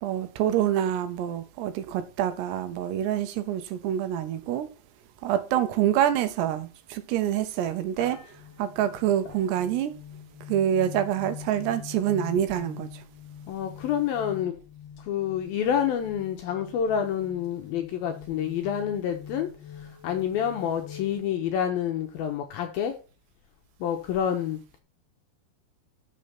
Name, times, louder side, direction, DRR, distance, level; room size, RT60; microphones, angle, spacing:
voice 1, 0.0-4.7 5.2-8.2 8.6-9.9 10.5-13.0, right 10 dB, 80° right, 2.7 m, -26 dB
sound 1, 7.2-7.3 8.0-21.2, left 8 dB, 50° left, 2.2 m, -44 dB
voice 2, 13.5-14.6 15.1-19.5 19.8-22.9 23.8-24.6, left 9 dB, 80° left, 2.2 m, -28 dB
6.6 x 6.5 x 5.8 m
omnidirectional pair, 5.0 m